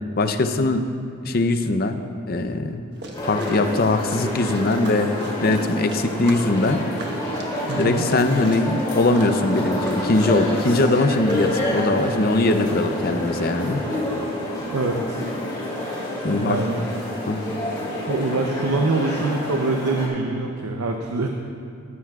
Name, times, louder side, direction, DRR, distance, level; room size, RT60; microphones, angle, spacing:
voice 1, 0.2-0.8 1.2-2.0 2.3-2.8 3.2-5.1 5.4-6.8 7.8-13.8 16.2-16.6 17.3-17.4, left 2 dB, 45° left, 8 dB, 0.6 m, -21 dB
sound 1, 2.9-11.7, right 2 dB, 50° right, 1.2 m, -40 dB
sound 2, 3.1-20.1, left 1 dB, 20° left, 2.7 m, -28 dB
voice 2, 7.7-8.0 14.7-15.3 16.3-16.9 18.1-21.3, right 3 dB, 80° right, 3 dB, 0.7 m, -24 dB
14.0 x 13.0 x 2.4 m, 2.3 s
head